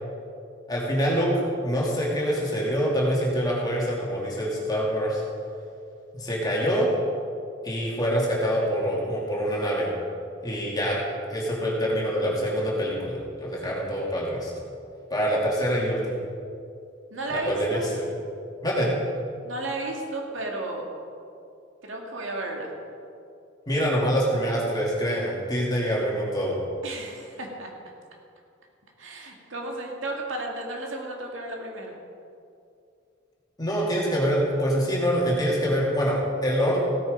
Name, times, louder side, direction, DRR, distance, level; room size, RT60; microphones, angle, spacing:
voice 1, 0.7-5.2 6.1-6.9 7.6-9.9 10.4-11.0 11.3-14.5 15.1-16.2 17.3-18.1 18.6-18.9 23.7-26.6 33.6-36.8, equal, 20° left, -4 dB, 2.6 m, -25 dB
voice 2, 17.1-17.9 19.4-20.9 21.8-22.7 26.8-27.7 29.0-32.0, right 2 dB, 80° right, 0 dB, 2.2 m, -33 dB
16.0 x 9.3 x 5.3 m, 2.5 s
head